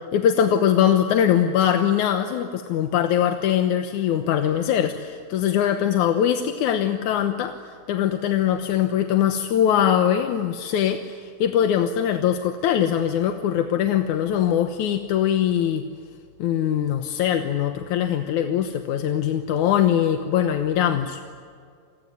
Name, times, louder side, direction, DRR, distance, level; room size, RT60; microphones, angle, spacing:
voice 1, 0.1-7.6 7.9-15.8 16.4-21.2, left 9 dB, 65° left, 7 dB, 2.2 m, -22 dB
27.5 x 21.5 x 9.8 m, 2.2 s
omnidirectional pair, 4.3 m